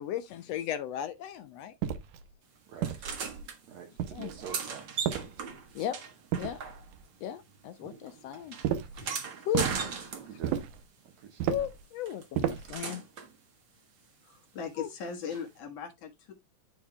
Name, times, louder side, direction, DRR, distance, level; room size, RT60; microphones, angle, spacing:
voice 1, 0.0-1.7 4.1-4.3 5.8-6.0 6.4-6.6 7.2-8.6 9.0-9.1 9.5-9.7 11.5-13.0 14.8-14.9, left 11 dB, 75° left, 1.6 m, -35 dB
sound 1, 1.8-2.2 2.8-3.5 4.0-4.5 5.0-5.7 6.3-7.0 8.6-9.0 9.5-9.8 10.4-10.8 11.4-11.8 12.3-12.8, right 10 dB, 80° right, 2.3 m, -33 dB
sound 2, 2.8-3.6 4.2-7.2 7.4-10.6 12.1-13.3 15.3-15.4, right 6 dB, 50° right, 1.6 m, -38 dB
voice 2, 3.7-5.1 10.1-10.8 11.2-11.5, right 7 dB, 65° right, 2.5 m, -46 dB
voice 3, 14.2-16.3, left 6 dB, 60° left, 2.5 m, -39 dB
12.5 x 4.6 x 2.2 m
omnidirectional pair, 3.5 m